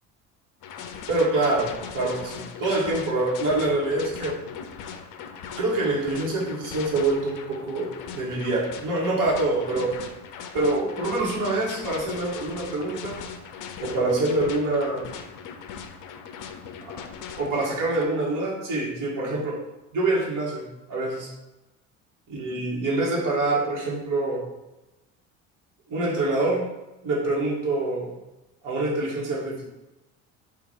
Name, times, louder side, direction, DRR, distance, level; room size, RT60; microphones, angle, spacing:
sound 1, 0.6-18.0, left 7 dB, 50° left, 0.5 m, -39 dB
voice 1, 1.1-1.7 1.9-4.4 5.6-9.9 10.5-13.2 13.8-15.1 17.4-19.6 19.9-21.3 22.3-24.4 25.9-26.6 27.0-28.1 28.6-29.6, right 2 dB, 50° right, -4 dB, 1.4 m, -25 dB
2.9 x 2.5 x 3.9 m, 1.0 s
hypercardioid pair, 65°, 40 cm